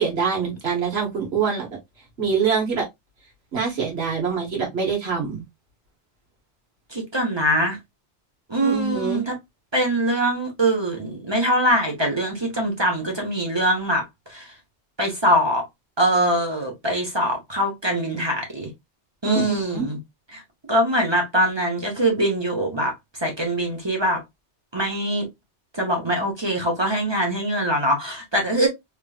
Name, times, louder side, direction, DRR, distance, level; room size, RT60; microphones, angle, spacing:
voice 1, 0.0-1.7 2.2-2.8 3.5-5.4 8.6-9.2 19.2-19.9, right 6 dB, 65° right, 1.5 m, -24 dB
voice 2, 6.9-7.8 8.5-9.3 9.7-14.0 14.3-14.5 15.0-15.6 16.0-18.7 19.2-20.0 20.3-20.4 20.7-24.2 24.7-25.3 25.7-28.7, right 1 dB, 25° right, 1.0 m, -23 dB
3.4 x 3.0 x 2.3 m
omnidirectional pair, 1.2 m